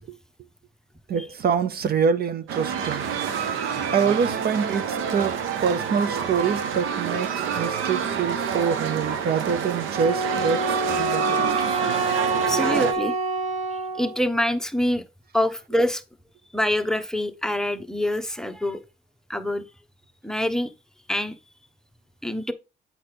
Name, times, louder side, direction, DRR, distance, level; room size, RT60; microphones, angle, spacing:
voice 1, 1.1-3.1 3.9-11.6, right 6 dB, 50° right, 0.6 m, -25 dB
sound 1, 2.5-12.9, right 7 dB, 85° right, 0.9 m, -27 dB
Wind instrument woodwind instrument, 10.0-14.2, right 3 dB, 30° right, 1.3 m, -26 dB
voice 2, 11.5-12.0 12.3-13.1 14.0-15.0 15.3-16.0 16.5-18.8 19.3-19.6 20.2-20.7 21.1-21.3 22.2-22.5, left 1 dB, 5° left, 0.8 m, -25 dB
8.8 x 4.2 x 3.3 m
cardioid pair, 90°, 20 cm